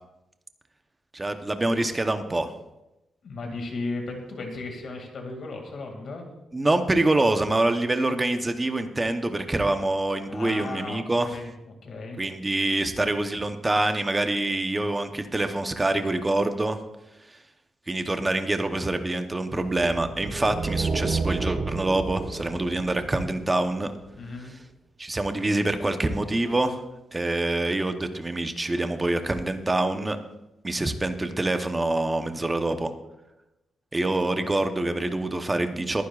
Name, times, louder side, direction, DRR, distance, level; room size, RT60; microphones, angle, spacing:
voice 1, 1.1-2.5 6.5-11.3 12.2-16.8 17.9-23.9 25.0-26.8 27.1-30.2 30.6-32.9 33.9-36.0, right 2 dB, 15° right, 7 dB, 0.8 m, -25 dB
voice 2, 3.2-6.3 10.3-12.2 24.2-24.5, left 3 dB, 50° left, 2 dB, 2.2 m, -35 dB
sound 1, 19.5-24.0, right 4 dB, 40° right, 1.1 m, -31 dB
22.0 x 9.8 x 2.4 m, 0.94 s
wide cardioid pair, 160°, 0 cm